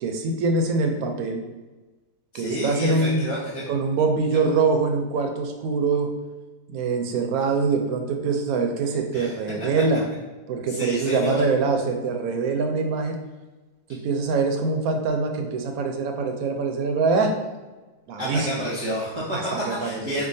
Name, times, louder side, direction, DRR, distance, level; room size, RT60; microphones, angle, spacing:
voice 1, 0.0-1.4 2.3-3.3 3.7-6.1 6.7-10.1 10.5-13.2 13.9-17.4 18.1-18.5 19.3-20.2, right 4 dB, 70° right, 3 dB, 0.9 m, -24 dB
voice 2, 2.3-3.6 9.1-9.3 10.7-11.4 18.2-20.3, equal, 30° right, -8 dB, 0.5 m, -29 dB
4.6 x 2.4 x 2.6 m, 1.2 s
omnidirectional pair, 1.8 m